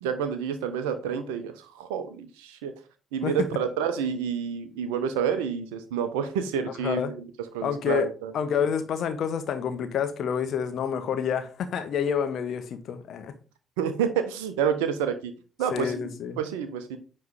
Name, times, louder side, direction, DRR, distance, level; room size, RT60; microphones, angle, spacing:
voice 1, 0.0-2.7 3.1-7.1 7.5-8.3 13.8-15.3 15.6-16.1 16.4-17.0, right 7 dB, 70° right, 0.8 m, -29 dB
voice 2, 6.8-7.1 7.6-13.4 15.7-16.4, left 8 dB, 55° left, 1.1 m, -28 dB
9.4 x 3.3 x 5.0 m
figure-of-eight pair, 45°, 0 cm